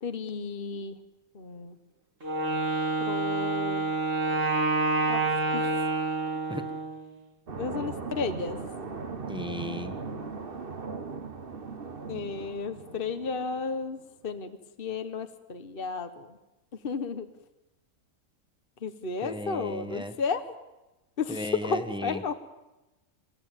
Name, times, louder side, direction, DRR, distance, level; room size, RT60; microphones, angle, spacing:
voice 1, 0.0-1.0 1.3-1.8 3.0-3.8 5.1-5.2 5.5-5.7 7.6-8.6 12.1-14.0 14.2-16.3 16.8-17.3 18.8-20.4 21.2-22.3, left 5 dB, 45° left, 9 dB, 1.3 m, -33 dB
Wind instrument woodwind instrument, 2.2-7.1, right 2 dB, 65° right, 3.8 m, -28 dB
sound 1, 7.5-13.9, right 4 dB, 45° right, 1.5 m, -38 dB
voice 2, 9.3-10.0 19.2-20.2 21.3-22.3, left 1 dB, 5° right, 8 dB, 1.5 m, -36 dB
29.5 x 16.0 x 9.0 m, 1.0 s
omnidirectional pair, 1.4 m